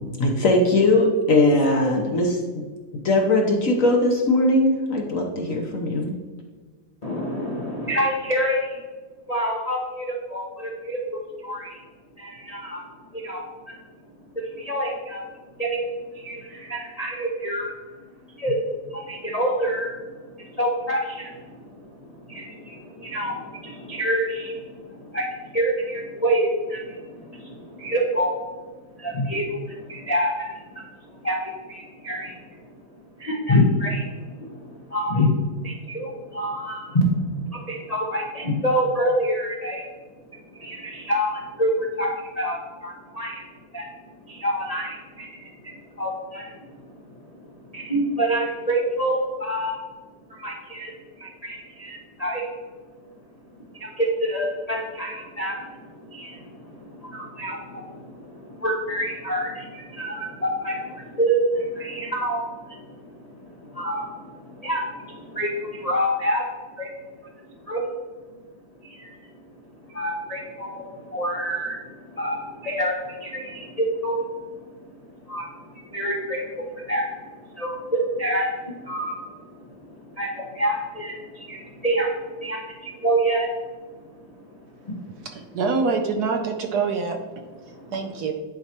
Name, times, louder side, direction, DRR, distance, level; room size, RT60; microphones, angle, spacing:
voice 1, 0.2-2.4 3.0-6.2, left 2 dB, 55° left, 1 dB, 1.0 m, -20 dB
voice 2, 7.0-8.8 9.3-11.8 12.2-12.8 13.1-13.7 14.3-15.2 15.6-15.8 16.1-17.7 18.4-18.6 18.9-28.4 29.0-32.7 33.2-35.4 35.6-39.9 40.3-43.5 43.7-43.9 44.3-49.8 50.3-52.5 53.7-66.4 66.8-66.9 67.2-67.9 68.8-69.1 69.8-83.5 83.9-85.3 87.6-87.9, equal, 40° left, -2 dB, 0.6 m, -28 dB
voice 3, 85.2-87.2 87.9-88.3, right 4 dB, 70° right, 5 dB, 1.0 m, -25 dB
10.5 x 4.6 x 2.9 m, 1.4 s
omnidirectional pair, 2.0 m